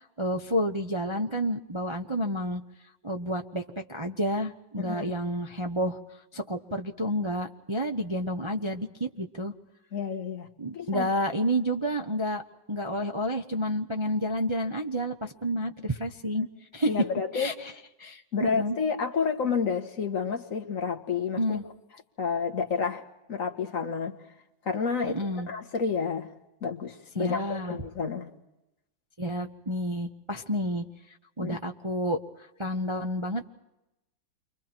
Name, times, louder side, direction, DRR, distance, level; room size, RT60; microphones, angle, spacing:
voice 1, 0.0-2.6 3.0-6.0 6.3-9.5 10.6-12.4 12.7-16.5 16.7-16.9 17.3-17.7 18.0-18.8 21.4-21.6 25.0-25.5 27.2-27.8 29.2-33.5, equal, 25° right, 3 dB, 0.6 m, -30 dB
voice 2, 4.8-5.1 9.9-10.5 10.7-11.1 16.4-16.5 16.9-17.5 18.3-21.6 22.2-23.0 23.3-24.2 24.6-25.2 25.5-26.3 26.6-28.3 31.4-31.6, left 5 dB, 40° left, 4 dB, 2.0 m, -30 dB
29.5 x 25.0 x 4.5 m, 0.92 s
omnidirectional pair, 2.2 m